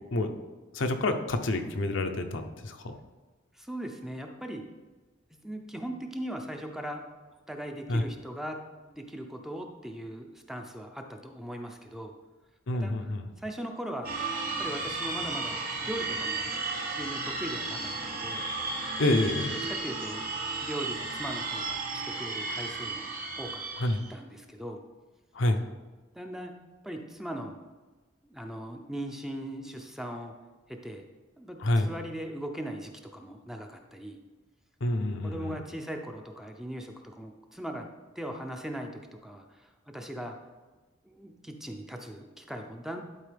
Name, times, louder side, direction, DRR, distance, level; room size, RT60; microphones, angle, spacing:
voice 1, 0.7-2.9 7.9-8.0 12.7-13.2 19.0-19.5 23.8-24.0 25.4-25.6 31.6-31.9 34.8-35.6, left 1 dB, 75° left, 6 dB, 0.7 m, -28 dB
voice 2, 3.5-4.6 5.4-7.0 7.5-12.1 12.7-13.1 13.4-14.1 14.6-16.5 16.9-18.4 19.7-20.2 20.6-23.1 23.4-23.6 24.1-24.8 26.1-26.5 26.8-27.6 28.2-30.3 30.7-31.0 31.4-34.2 35.2-37.9 38.2-40.4 41.0-43.0, right 1 dB, ahead, 3 dB, 0.5 m, -39 dB
sound 1, 14.0-24.1, right 3 dB, 50° right, 1.1 m, -34 dB
11.0 x 4.6 x 3.4 m, 1.2 s
head